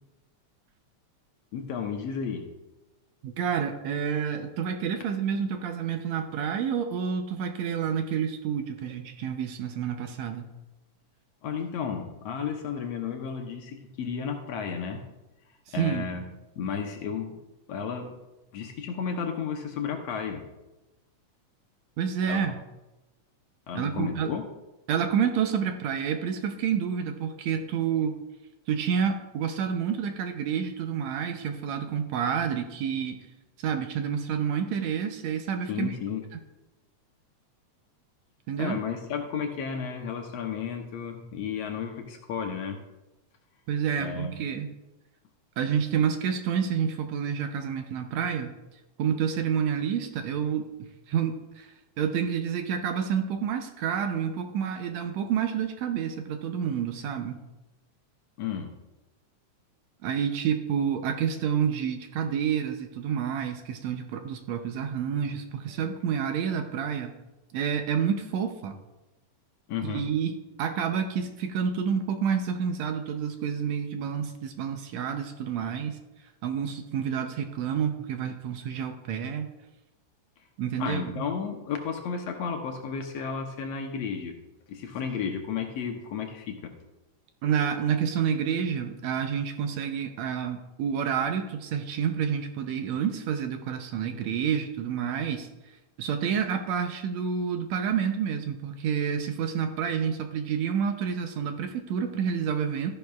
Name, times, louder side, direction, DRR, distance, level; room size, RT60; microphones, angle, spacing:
voice 1, 1.5-2.5 11.4-15.0 15.7-16.2 16.6-17.4 17.7-18.2 18.5-20.4 22.3-22.6 23.7-24.4 35.7-36.2 38.6-42.8 44.0-44.3 58.4-58.7 69.7-70.0 80.8-84.3 84.7-86.7, left 6 dB, 70° left, 3 dB, 1.9 m, -33 dB
voice 2, 3.2-10.5 15.7-16.1 22.0-22.6 23.7-24.3 24.9-28.2 28.7-33.2 33.6-35.9 38.5-38.8 43.7-44.7 45.6-48.5 49.0-57.4 60.0-67.2 67.5-68.8 69.8-76.0 76.4-79.5 80.6-81.2 87.4-95.5 96.0-102.9, right 7 dB, 75° right, 6 dB, 1.9 m, -29 dB
13.5 x 10.5 x 2.4 m, 1.0 s
omnidirectional pair, 3.4 m